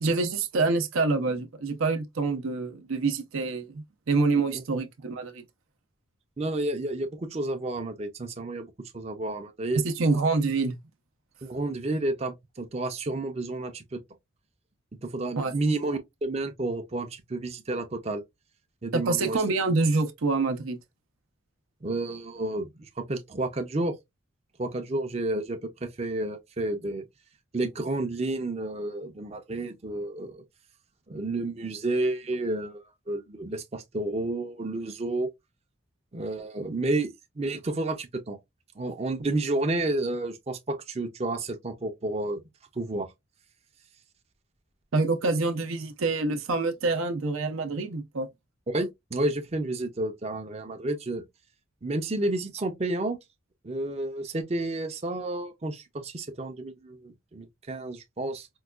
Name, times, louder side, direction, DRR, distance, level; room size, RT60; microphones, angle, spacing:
voice 1, 0.0-5.4 9.8-10.8 15.4-15.5 18.9-20.8 44.9-48.3, right 3 dB, 80° right, 0.6 m, -26 dB
voice 2, 6.4-8.7 8.9-9.8 11.4-14.0 15.0-18.2 18.8-19.4 21.8-23.9 24.6-27.0 27.5-30.4 31.1-35.3 36.1-37.1 37.4-38.4 38.8-42.4 42.8-43.1 48.7-51.2 51.8-53.2 53.6-58.5, right 2 dB, 30° right, 0.5 m, -31 dB
4.5 x 2.2 x 2.3 m
head